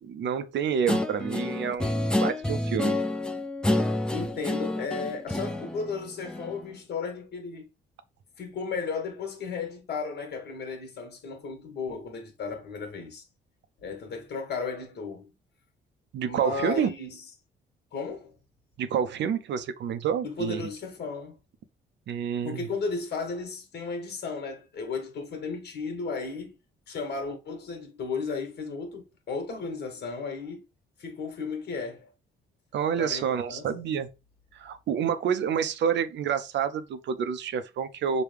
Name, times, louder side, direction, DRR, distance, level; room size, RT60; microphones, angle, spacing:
voice 1, 0.0-3.0 16.1-16.9 18.8-20.6 22.1-22.7 32.7-34.1 34.5-38.2, right 7 dB, 65° right, 0.6 m, -28 dB
Guitar, 0.9-6.7, left 1 dB, 5° left, 0.5 m, -29 dB
voice 2, 3.9-7.7 8.4-13.2 13.8-15.3 16.2-17.2 17.9-18.3 20.2-21.4 22.4-26.5 26.9-30.6 31.0-32.1 33.0-34.0, left 4 dB, 55° left, 1.4 m, -34 dB
4.9 x 2.2 x 3.3 m
cardioid pair, 90°, 20 cm